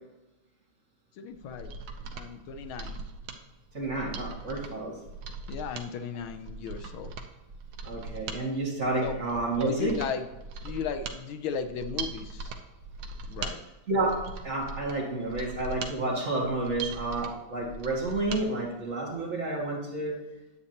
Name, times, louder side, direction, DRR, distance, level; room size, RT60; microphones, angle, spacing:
voice 1, 1.2-1.7 2.1-3.0 5.5-7.1 9.0-9.2 9.6-10.2 10.6-12.5 13.3-13.6, left 7 dB, 85° left, 9 dB, 1.5 m, -36 dB
Mechanisms, 1.4-18.4 18.8-18.9, right 4 dB, 75° right, 1.6 m, -40 dB
voice 2, 3.7-5.0 7.8-10.0 13.9-20.2, right 2 dB, 35° right, -4 dB, 2.2 m, -30 dB
9.5 x 8.4 x 2.9 m, 1.0 s
omnidirectional pair, 2.2 m